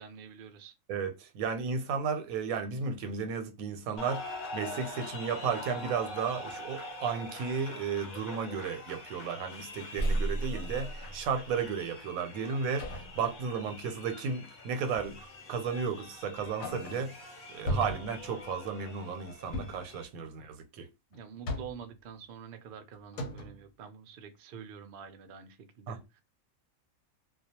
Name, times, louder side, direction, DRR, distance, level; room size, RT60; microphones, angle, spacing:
voice 1, 0.0-0.7 21.1-26.2, right 7 dB, 70° right, 0.5 m, -47 dB
voice 2, 0.9-15.2 15.5-17.1 17.5-20.9 25.9-26.0, right 6 dB, 90° right, 1.0 m, -34 dB
sound 1, 4.0-20.1, left 2 dB, 55° left, 0.6 m, -45 dB
sound 2, 6.3-6.6 7.1-7.5 8.0-8.3 8.7-9.6 9.9-11.5 12.8-13.3 14.9-15.3 15.8-15.9 16.4-17.2 17.7-18.3 19.4-19.9 21.1-22.0 22.7-22.8 23.1-23.7, right 1 dB, 90° left, 1.0 m, -37 dB
2.2 x 2.2 x 2.8 m
omnidirectional pair, 1.4 m